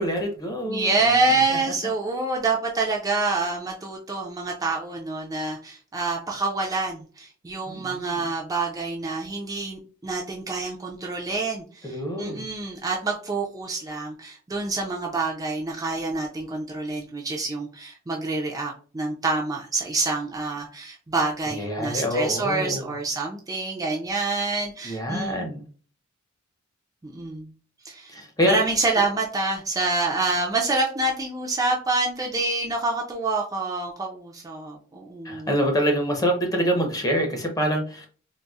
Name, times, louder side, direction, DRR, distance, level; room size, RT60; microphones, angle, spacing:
voice 1, 0.0-1.6 7.7-8.3 11.8-12.5 21.5-22.9 24.8-25.6 28.1-28.6 35.2-38.1, equal, 15° left, 2 dB, 0.7 m, -26 dB
voice 2, 0.7-25.4 27.0-27.5 27.8-28.1 28.5-35.5, right 3 dB, 15° right, -2 dB, 0.4 m, -27 dB
3.9 x 2.0 x 2.3 m, 0.40 s
head